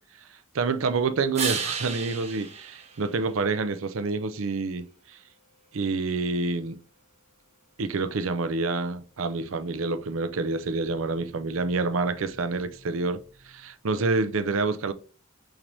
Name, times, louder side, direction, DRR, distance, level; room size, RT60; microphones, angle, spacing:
voice 1, 0.5-5.2 5.7-6.8 7.8-14.9, right 3 dB, 70° right, 0.5 m, -28 dB
sound 1, 1.3-3.9 9.7-13.6, right 5 dB, 30° right, 0.8 m, -37 dB
5.9 x 3.4 x 2.7 m
head